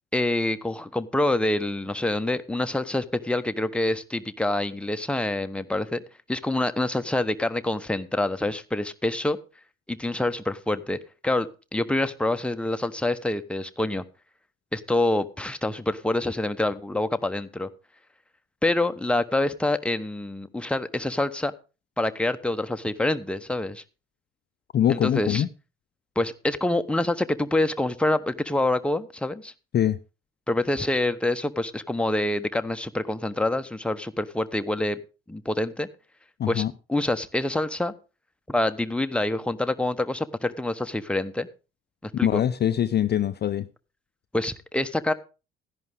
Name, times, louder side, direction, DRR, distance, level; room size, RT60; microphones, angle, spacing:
voice 1, 0.1-6.0 6.3-9.4 9.9-11.0 11.2-14.0 14.7-17.7 18.6-21.5 22.0-23.8 24.9-25.4 26.2-29.5 30.5-35.0 35.3-35.9 36.5-36.6 36.9-37.9 38.5-41.5 42.0-42.4 44.3-45.1, left 1 dB, 5° left, 1.0 m, -26 dB
voice 2, 24.7-25.5 29.7-30.0 36.4-36.7 42.2-43.7, left 10 dB, 35° left, 0.6 m, -23 dB
14.0 x 11.0 x 3.5 m
figure-of-eight pair, 50°, 29 cm